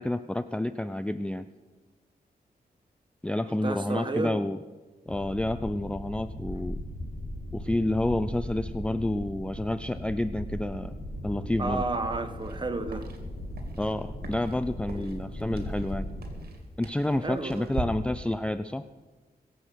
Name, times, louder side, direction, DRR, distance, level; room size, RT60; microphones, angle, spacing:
voice 1, 0.0-1.5 3.2-4.6 5.1-6.8 7.5-10.9 11.2-11.8 13.8-16.1 16.8-18.8, left 1 dB, 5° left, 11 dB, 0.4 m, -29 dB
voice 2, 3.4-4.3 11.6-13.1 14.9-15.1 17.2-17.7, right 3 dB, 30° right, 7 dB, 1.4 m, -32 dB
sound 1, 5.1-16.4, left 1 dB, 85° left, 4.2 m, -38 dB
sound 2, 12.3-17.8, right 4 dB, 70° right, 2.6 m, -42 dB
23.0 x 7.9 x 6.3 m, 1.3 s
wide cardioid pair, 125°, 16 cm